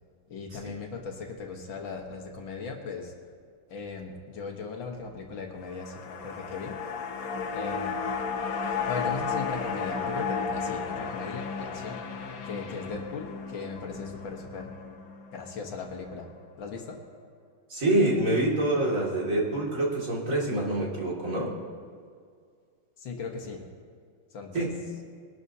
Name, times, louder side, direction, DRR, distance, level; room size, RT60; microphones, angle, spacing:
voice 1, 0.3-3.1 3.7-6.8 7.5-7.9 8.9-12.0 12.4-15.0 15.3-16.3 16.6-17.0 23.0-23.6 24.3-24.7, left 4 dB, 75° left, 2 dB, 2.1 m, -38 dB
sound 1, 5.6-16.0 16.3-16.4, left 5 dB, 55° left, 1.1 m, -34 dB
voice 2, 17.7-21.5 24.5-24.8, right 1 dB, 40° right, -4 dB, 2.7 m, -26 dB
22.0 x 12.0 x 2.8 m, 2.1 s
omnidirectional pair, 2.2 m